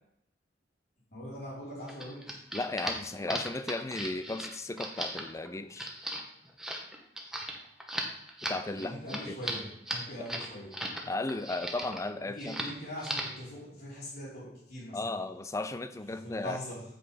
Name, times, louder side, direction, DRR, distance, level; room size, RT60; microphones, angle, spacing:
voice 1, 1.1-2.2 8.7-10.7 12.3-15.1 16.1-16.8, left 1 dB, 55° left, -7 dB, 3.2 m, -42 dB
sound 1, 1.9-11.0 11.3-12.0 12.4-12.7 13.0-13.4, right 1 dB, 5° right, 0.9 m, -37 dB
voice 2, 2.5-5.9 8.4-8.9 9.3-9.4 11.1-12.6 14.9-16.6, left 2 dB, 15° left, 10 dB, 0.4 m, -35 dB
7.6 x 4.8 x 4.9 m, 0.79 s
head